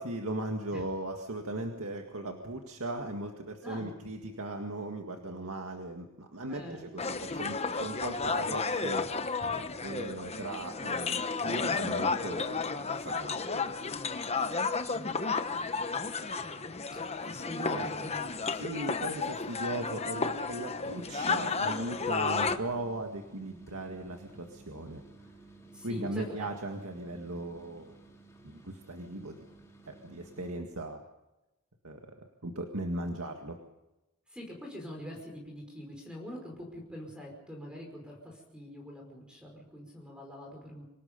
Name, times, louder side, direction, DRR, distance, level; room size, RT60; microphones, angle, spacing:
voice 1, 0.0-9.1 9.8-12.7 13.0-13.9 17.6-17.9 18.5-25.0 25.8-27.9 28.4-29.4 29.9-31.0 31.8-32.0 32.4-33.6, right 1 dB, 70° right, 3 dB, 2.0 m, -38 dB
voice 2, 6.5-6.9 16.9-18.5 25.7-26.5 34.3-40.8, equal, 5° right, 0 dB, 5.3 m, -44 dB
sound 1, 7.0-22.6, left 4 dB, 30° left, 1.1 m, -32 dB
sound 2, 20.7-30.7, right 3 dB, 15° left, 3.4 m, -54 dB
26.5 x 18.0 x 5.3 m, 0.98 s
head